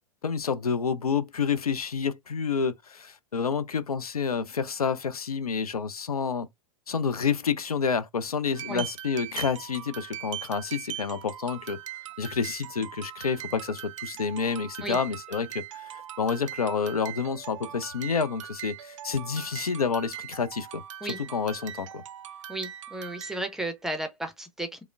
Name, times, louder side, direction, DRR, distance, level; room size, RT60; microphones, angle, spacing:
voice 1, 0.2-6.5 6.9-11.8 12.2-22.0, left 6 dB, 80° left, 0.4 m, -29 dB
sound 1, 8.5-23.6, right 12 dB, 60° right, 0.4 m, -41 dB
voice 2, 21.0-21.3 22.5-24.8, right 1 dB, ahead, 0.5 m, -34 dB
4.7 x 2.0 x 2.4 m
figure-of-eight pair, 100°, 19 cm